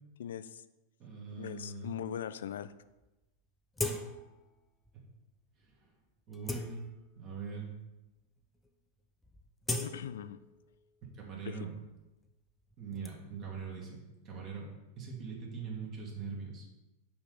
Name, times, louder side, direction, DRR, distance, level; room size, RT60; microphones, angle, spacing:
voice 1, 0.2-0.6 1.4-2.7 9.8-10.4 11.4-11.6, left 9 dB, 60° left, 13 dB, 0.4 m, -40 dB
voice 2, 1.0-1.9 4.9-5.1 5.6-5.9 6.3-6.8 7.2-7.7 11.1-11.7 12.8-14.7 15.0-16.7, right 5 dB, 35° right, -1 dB, 2.1 m, -42 dB
sound 1, 3.0-3.1 3.7-4.4 4.8-5.0 5.6-5.8 6.2-7.3 8.0-8.1 8.4-8.7 9.0-10.8 11.1-13.1, left 2 dB, 10° left, 0.7 m, -40 dB
5.7 x 5.3 x 6.0 m, 1.0 s
figure-of-eight pair, 90°, 0 cm